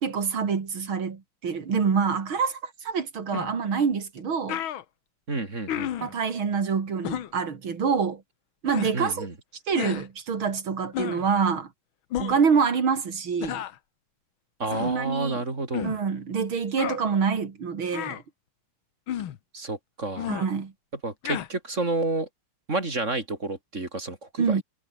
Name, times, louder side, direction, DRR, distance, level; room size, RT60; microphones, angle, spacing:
voice 1, 0.0-4.6 6.0-8.2 8.6-9.3 9.7-11.7 12.2-13.6 14.8-15.4 15.8-18.2 20.3-20.7 24.4-24.6, right 6 dB, 70° right, 3.5 m, -26 dB
sound 1, 3.3-3.5 4.2-4.3 4.5-4.8 5.7-6.1 7.0-7.3 8.6-8.9 9.8-10.1 10.9-11.3 12.1-12.4 13.4-13.8 14.7-15.0 15.7-16.0 16.8-17.0 17.9-18.2 19.1-19.4 20.2-20.5 21.2-21.5, left 11 dB, 70° left, 1.9 m, -32 dB
voice 2, 5.3-5.9 8.9-9.3 14.6-15.9 19.5-20.3 21.0-22.3 22.7-24.6, right 2 dB, 35° right, 3.6 m, -30 dB
omnidirectional pair, 2.3 m